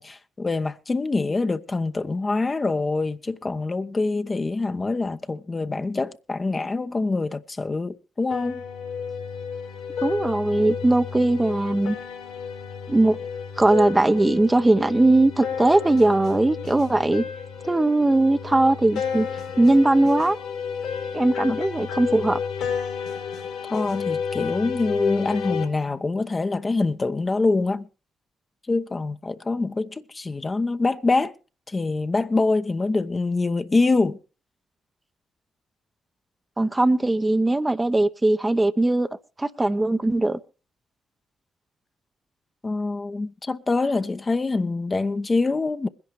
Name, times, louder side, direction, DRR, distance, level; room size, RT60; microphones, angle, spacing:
voice 1, 0.0-8.6 21.5-21.6 23.7-27.9 28.7-31.3 31.7-34.2 42.6-45.9, left 3 dB, 35° left, 0.9 m, -25 dB
sound 1, 8.3-25.6, left 6 dB, 75° left, 3.6 m, -31 dB
voice 2, 10.0-12.0 12.9-13.2 13.6-17.3 17.6-19.3 19.6-20.4 21.1-22.4 36.6-39.1 39.4-40.4, right 2 dB, 20° right, 0.8 m, -20 dB
22.0 x 11.0 x 3.2 m
hypercardioid pair, 40°, 0 cm